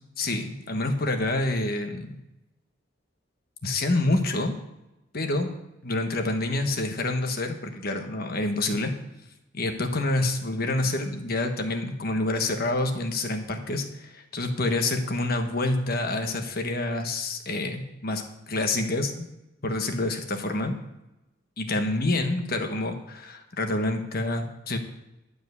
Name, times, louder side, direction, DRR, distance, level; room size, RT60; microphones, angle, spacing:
voice 1, 0.2-2.2 3.6-4.5 5.1-5.5 5.8-8.9 9.5-19.3 19.6-20.8 21.6-24.8, left 2 dB, 50° left, 5 dB, 1.3 m, -27 dB
11.5 x 5.3 x 8.1 m, 0.92 s
head